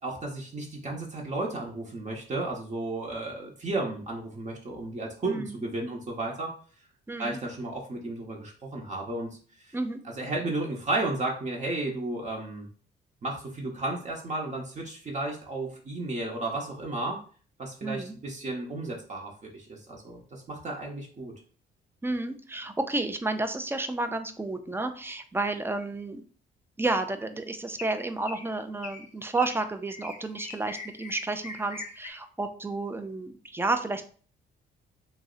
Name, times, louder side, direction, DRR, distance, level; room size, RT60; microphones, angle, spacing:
voice 1, 0.0-6.5 7.2-9.3 10.2-12.7 13.2-17.2 17.6-21.3, right 2 dB, 35° right, 0 dB, 0.8 m, -33 dB
voice 2, 5.3-5.6 7.1-7.4 9.7-10.0 17.8-18.1 22.0-26.2 26.8-34.1, right 2 dB, 10° right, 8 dB, 0.4 m, -31 dB
sound 1, 26.9-27.2 27.8-28.0 28.3-28.5 28.8-29.0 29.4-29.6 29.9-32.1, left 3 dB, 40° left, 0.7 m, -41 dB
2.6 x 2.1 x 3.7 m, 0.42 s
cardioid pair, 90°, 20 cm